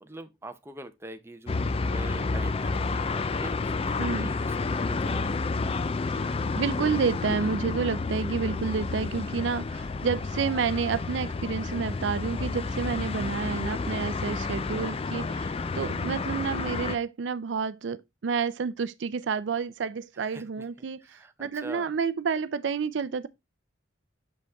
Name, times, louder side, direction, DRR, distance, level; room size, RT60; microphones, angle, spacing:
voice 1, 0.0-5.4 13.3-13.8 14.5-14.9 20.1-21.9, right 1 dB, 15° right, 0.7 m, -45 dB
sound 1, 1.5-17.0, left 3 dB, 30° left, 0.4 m, -30 dB
voice 2, 4.0-4.3 6.1-23.3, right 5 dB, 65° right, 0.4 m, -30 dB
6.5 x 5.2 x 3.4 m
head